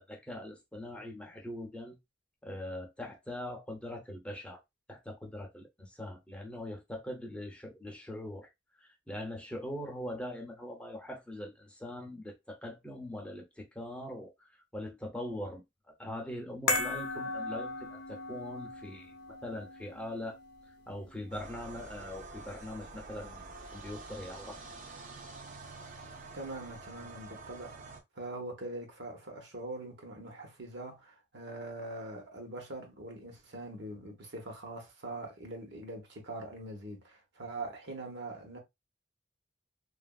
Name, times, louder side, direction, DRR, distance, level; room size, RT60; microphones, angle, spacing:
voice 1, 0.0-2.0 2.4-4.6 4.9-8.5 8.8-19.1 19.4-20.4 20.9-24.6, left 1 dB, 5° left, 0.6 m, -42 dB
sound 1, 16.7-23.1 23.4-23.5, left 3 dB, 60° left, 0.6 m, -38 dB
sound 2, 21.3-28.0, right 3 dB, 45° right, 0.6 m, -47 dB
voice 2, 26.3-27.8 28.1-38.6, right 2 dB, 65° right, 1.0 m, -43 dB
2.9 x 2.5 x 2.3 m
head